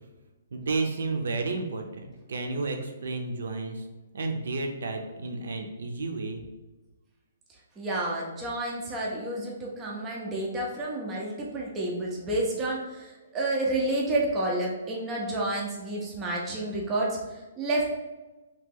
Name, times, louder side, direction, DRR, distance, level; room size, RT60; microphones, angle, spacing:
voice 1, 0.5-3.8 4.1-6.5, right 3 dB, 65° right, 4 dB, 0.6 m, -32 dB
voice 2, 7.8-17.9, right 1 dB, 10° right, -4 dB, 0.4 m, -30 dB
2.9 x 2.7 x 3.7 m, 1.1 s
hypercardioid pair, 180°, 0 cm